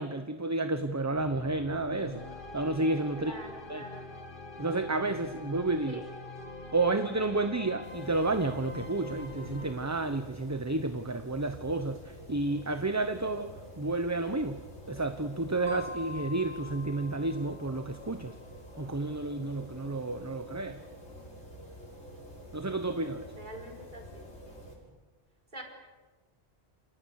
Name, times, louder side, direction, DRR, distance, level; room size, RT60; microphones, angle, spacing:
voice 1, 0.0-2.2 2.5-3.3 3.7-3.8 4.6-6.0 6.7-14.6 14.9-18.3 18.8-20.8 22.5-23.3, right 2 dB, 15° right, 8 dB, 0.9 m, -31 dB
sound 1, 1.1-9.7, left 2 dB, 50° left, 2.3 m, -44 dB
voice 2, 3.1-4.1 5.9-6.0 23.4-24.7 25.5-25.6, equal, 45° right, 3 dB, 4.6 m, -45 dB
sound 2, 7.8-24.8, equal, 80° left, 7.0 m, -48 dB
sound 3, 15.7-18.2, left 2 dB, 80° right, 4.6 m, -44 dB
29.0 x 27.0 x 6.6 m, 1.3 s
omnidirectional pair, 1.1 m